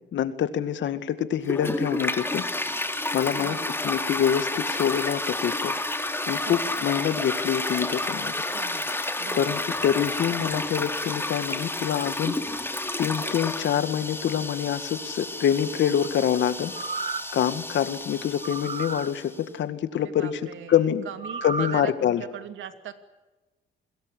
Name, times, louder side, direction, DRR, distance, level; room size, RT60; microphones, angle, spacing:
voice 1, 0.1-2.4 3.1-3.6 3.8-5.8 6.3-8.3 9.1-12.6 13.0-16.7 17.3-20.4 20.7-21.0 21.4-22.2, left 9 dB, 70° left, 11 dB, 2.1 m, -26 dB
Toilet flush, 1.4-19.4, left 2 dB, 10° left, 2.7 m, -31 dB
voice 2, 3.4-3.8 6.5-6.7 8.5-8.9 9.2-9.5 19.9-22.9, right 10 dB, 75° right, 9 dB, 2.6 m, -40 dB
sound 1, 16.6-17.4 18.4-19.1 21.2-21.9 22.3-22.4, right 4 dB, 35° right, 1.8 m, -33 dB
27.0 x 21.0 x 8.5 m, 1.2 s
cardioid pair, 90°, 20 cm